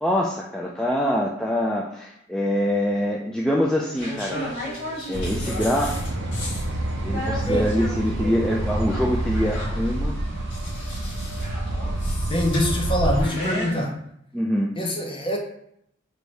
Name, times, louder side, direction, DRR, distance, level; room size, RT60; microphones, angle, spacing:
voice 1, 0.0-4.4 5.1-6.0 7.0-10.2 14.3-14.7, equal, 5° left, -3 dB, 0.3 m, -24 dB
sound 1, 3.9-13.8, left 1 dB, 65° left, 1.6 m, -35 dB
sound 2, 5.1-13.2, right 1 dB, 70° right, 0.5 m, -27 dB
voice 2, 12.3-14.0 14.8-15.4, left 1 dB, 25° left, 0 dB, 0.8 m, -24 dB
4.7 x 2.6 x 3.2 m, 0.74 s
head